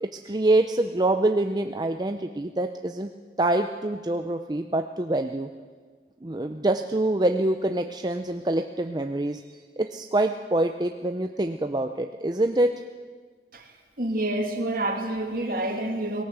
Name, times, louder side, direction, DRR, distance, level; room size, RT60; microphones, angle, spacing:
voice 1, 0.0-3.1 3.4-5.5 6.2-12.7, right 1 dB, 25° right, 6 dB, 0.6 m, -25 dB
voice 2, 14.0-16.2, right 1 dB, 50° right, 3 dB, 2.6 m, -28 dB
18.5 x 17.0 x 8.1 m, 1.5 s
head